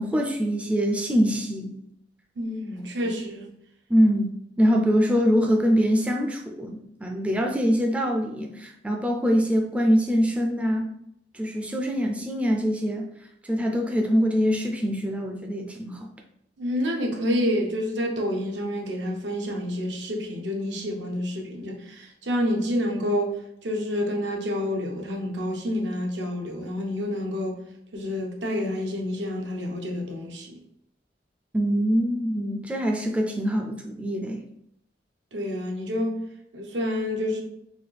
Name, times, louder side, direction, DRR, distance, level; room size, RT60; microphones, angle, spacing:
voice 1, 0.0-1.7 2.8-2.9 3.9-10.9 11.3-13.1 13.4-16.1 31.5-34.5, equal, 5° right, 0.3 m, -24 dB
voice 2, 2.4-3.5 16.6-23.3 23.6-27.6 27.9-30.5 35.3-36.2 36.5-37.4, left 1 dB, 85° right, 0.8 m, -28 dB
4.0 x 2.4 x 3.3 m
head